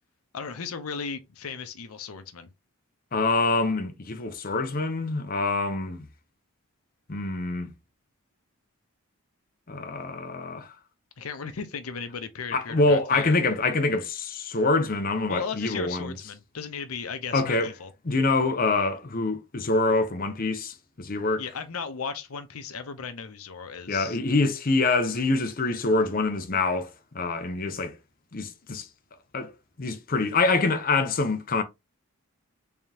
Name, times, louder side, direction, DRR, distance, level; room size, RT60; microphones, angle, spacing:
voice 1, 0.3-2.5 11.2-13.3 15.3-17.9 21.4-24.2, left 5 dB, 80° left, 0.7 m, -36 dB
voice 2, 3.1-6.1 7.1-7.7 9.7-10.7 12.5-16.2 17.3-17.7 18.0-21.4 23.9-28.0 28.3-28.9 29.3-29.5 29.8-31.6, left 3 dB, 40° left, 0.7 m, -25 dB
3.6 x 3.4 x 2.8 m
head